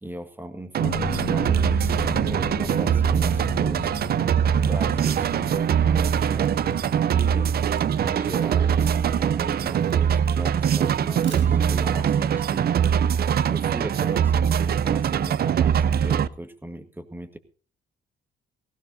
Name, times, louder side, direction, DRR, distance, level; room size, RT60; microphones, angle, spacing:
voice 1, 0.0-3.9 4.5-7.5 8.0-12.8 13.4-17.4, right 1 dB, 10° right, 9 dB, 1.6 m, -38 dB
sound 1, 0.7-16.3, right 8 dB, 50° right, 0.5 m, -22 dB
sound 2, 0.8-12.4 12.7-12.8, left 6 dB, 50° left, 3.0 m, -38 dB
Camera, 6.2-12.0, right 5 dB, 70° right, 6.1 m, -50 dB
18.5 x 16.5 x 2.7 m, 0.39 s
cardioid pair, 90°, 20 cm